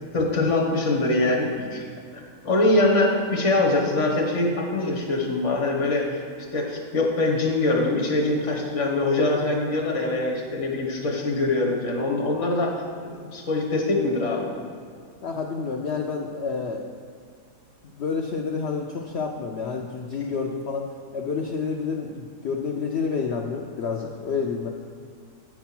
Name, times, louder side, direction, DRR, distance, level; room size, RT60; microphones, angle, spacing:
voice 1, 0.1-1.8 2.1-6.2 6.5-12.8 13.0-14.5, left 2 dB, 45° left, -1 dB, 1.5 m, -23 dB
voice 2, 15.2-16.9 17.8-24.7, left 5 dB, 80° left, 1 dB, 0.6 m, -29 dB
8.7 x 4.6 x 5.9 m, 2.2 s
omnidirectional pair, 1.8 m